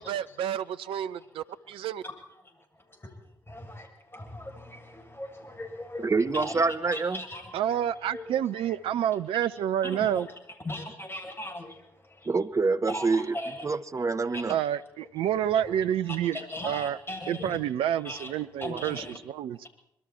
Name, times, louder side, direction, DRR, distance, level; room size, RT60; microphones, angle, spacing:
voice 1, 0.0-2.0 7.5-10.3 14.5-17.0 17.3-19.7, right 10 dB, 65° right, 13 dB, 0.8 m, -29 dB
voice 2, 2.4-3.2 3.5-7.8 8.1-8.7 9.8-10.3 10.6-12.3 12.9-13.7 14.3-14.4 15.5-15.6 16.1-17.6 18.0-18.3 18.6-19.2, left 1 dB, 20° left, 2 dB, 7.9 m, -39 dB
voice 3, 6.0-7.2 12.3-13.3 13.6-14.5, right 4 dB, 30° right, 12 dB, 1.1 m, -26 dB
26.5 x 22.0 x 4.5 m, 0.81 s
figure-of-eight pair, 40°, 10 cm